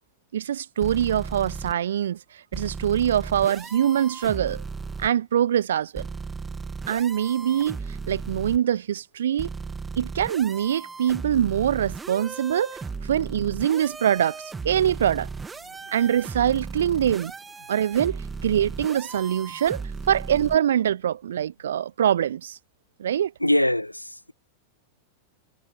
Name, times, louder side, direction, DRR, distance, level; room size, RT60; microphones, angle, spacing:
voice 1, 0.3-2.2 2.5-4.6 5.0-6.1 6.9-7.8 8.1-9.5 10.0-15.3 15.9-17.3 17.7-19.8 20.1-22.6 23.0-23.3, right 10 dB, 65° right, 0.7 m, -24 dB
sound 1, 0.8-1.7 2.5-5.1 5.9-8.6 9.4-20.6, right 4 dB, 15° right, 2.5 m, -36 dB
voice 2, 23.4-24.3, left 1 dB, 85° left, 0.8 m, -23 dB
figure-of-eight pair, 90°, 0 cm